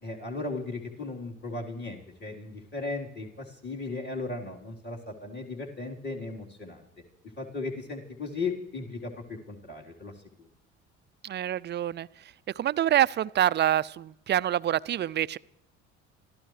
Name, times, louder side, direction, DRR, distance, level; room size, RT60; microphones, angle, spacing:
voice 1, 0.0-6.8 7.4-10.1 10.4-10.5, left 3 dB, 30° left, -2 dB, 4.1 m, -36 dB
voice 2, 11.2-12.1 12.6-15.4, right 11 dB, 30° right, 17 dB, 0.5 m, -26 dB
26.0 x 15.0 x 3.4 m, 0.84 s
hypercardioid pair, 60°, 36 cm